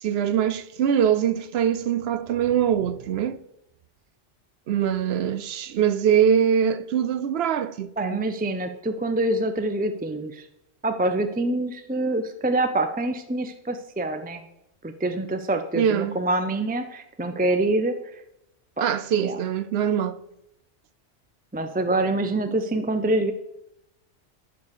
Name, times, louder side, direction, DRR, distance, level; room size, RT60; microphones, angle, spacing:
voice 1, 0.0-3.4 4.7-8.2 15.7-16.1 18.8-20.2, right 8 dB, 65° right, 0.7 m, -23 dB
voice 2, 8.0-10.5 10.8-14.4 14.8-18.2 18.8-18.9 19.2-19.4 21.5-23.3, right 2 dB, 15° right, 0.3 m, -26 dB
11.0 x 4.7 x 6.6 m
omnidirectional pair, 1.3 m